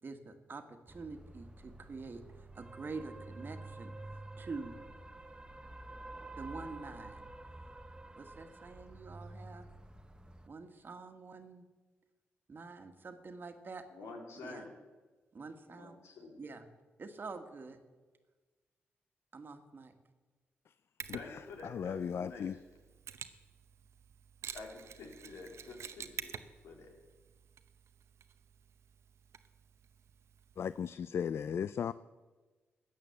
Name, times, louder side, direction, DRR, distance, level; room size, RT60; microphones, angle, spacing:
voice 1, 0.0-3.9 4.4-4.7 6.3-7.2 8.2-9.7 10.5-11.6 12.5-13.8 14.4-14.6 15.3-16.0 16.4-16.6 17.0-17.8 19.3-19.9, right 4 dB, 45° right, 7 dB, 1.5 m, -46 dB
sound 1, 0.9-10.5, right 2 dB, 20° right, 1.0 m, -49 dB
voice 2, 13.9-14.7 15.7-16.4 21.1-22.6 24.5-26.9, left 3 dB, 85° left, 1 dB, 2.8 m, -49 dB
Mechanisms, 21.0-30.9, right 8 dB, 75° right, 0.7 m, -50 dB
voice 3, 21.1-22.5 30.6-31.9, left 7 dB, 60° left, 16 dB, 0.3 m, -36 dB
14.0 x 8.8 x 7.0 m, 1.3 s
cardioid pair, 65°, 5 cm